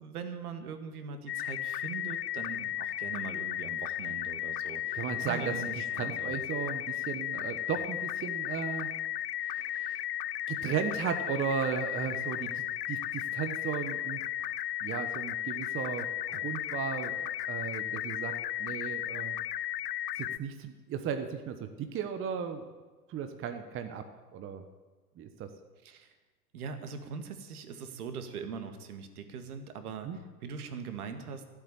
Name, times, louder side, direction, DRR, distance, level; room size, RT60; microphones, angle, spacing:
voice 1, 0.0-6.4 25.8-26.1 26.5-31.4, right 6 dB, 65° right, 7 dB, 2.0 m, -41 dB
sound 1, 1.3-20.4, left 12 dB, 80° left, 0.6 m, -35 dB
voice 2, 4.9-5.5 5.9-8.9 9.4-10.0 10.5-14.5 14.8-19.4 20.2-22.6 23.1-24.0 24.3-24.6 25.2-25.5 30.0-30.2, right 7 dB, 25° right, 8 dB, 1.1 m, -36 dB
14.0 x 8.4 x 9.8 m, 1.3 s
hypercardioid pair, 100°, 47 cm